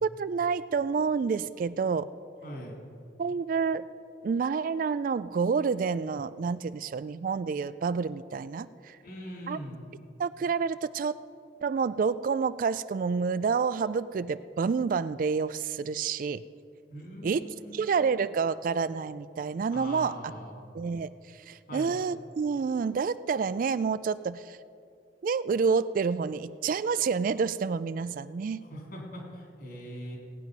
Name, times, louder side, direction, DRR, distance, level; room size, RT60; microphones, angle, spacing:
voice 1, 0.0-2.1 3.2-3.9 4.2-9.0 9.5-9.6 10.2-11.1 11.6-16.4 17.2-20.2 20.7-21.1 21.5-24.6 25.2-28.6, right 5 dB, 50° right, 16 dB, 0.3 m, -28 dB
voice 2, 2.4-2.8 9.0-9.8 16.9-17.9 19.7-20.6 21.7-21.9 28.7-30.2, equal, 60° left, -2 dB, 3.8 m, -41 dB
18.0 x 9.1 x 5.3 m, 2.5 s
head